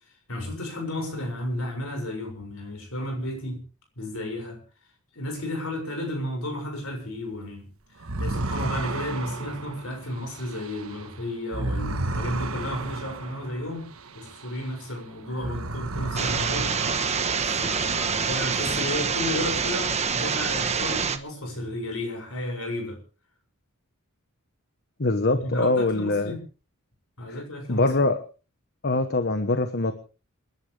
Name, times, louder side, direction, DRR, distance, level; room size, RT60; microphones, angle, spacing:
voice 1, 0.3-3.6 4.0-4.6 5.1-7.7 8.2-13.9 14.1-16.7 17.5-23.0 25.3-26.4 27.2-27.9, left 1 dB, 65° left, 4 dB, 6.8 m, -33 dB
sound 1, 8.0-14.9 15.3-18.0, right 2 dB, 70° right, 1.4 m, -33 dB
sound 2, 16.2-21.2, right 5 dB, 30° right, 1.2 m, -26 dB
voice 2, 25.0-26.4 27.3-27.4 27.7-28.2 28.8-29.9, left 2 dB, 50° left, 8 dB, 1.2 m, -23 dB
28.0 x 11.5 x 3.4 m, 0.35 s
head